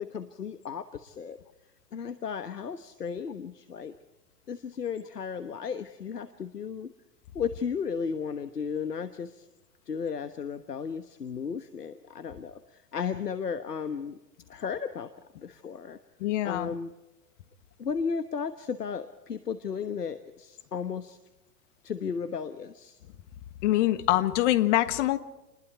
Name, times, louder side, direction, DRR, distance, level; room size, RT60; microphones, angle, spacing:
voice 1, 0.0-1.4 1.9-3.9 4.5-6.9 7.3-9.5 9.9-14.2 14.5-15.1 15.4-16.0 16.4-16.9 17.8-21.2 21.8-23.0, left 6 dB, 85° left, 11 dB, 1.3 m, -34 dB
voice 2, 16.2-16.7 23.6-25.2, left 15 dB, 50° left, 13 dB, 1.6 m, -24 dB
28.0 x 21.5 x 4.5 m, 1.0 s
figure-of-eight pair, 105°, 46 cm